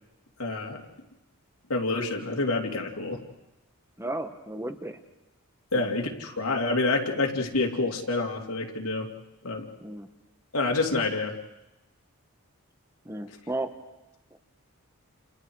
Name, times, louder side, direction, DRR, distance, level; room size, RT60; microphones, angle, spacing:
voice 1, 0.4-0.8 1.7-3.3 5.7-9.1 9.4-9.7 10.5-11.4, left 3 dB, 75° left, 1 dB, 2.9 m, -27 dB
voice 2, 4.0-5.0 5.7-5.9 9.8-10.1 13.0-13.7, right 2 dB, 10° right, 7 dB, 1.2 m, -34 dB
29.5 x 29.0 x 4.8 m, 0.97 s
head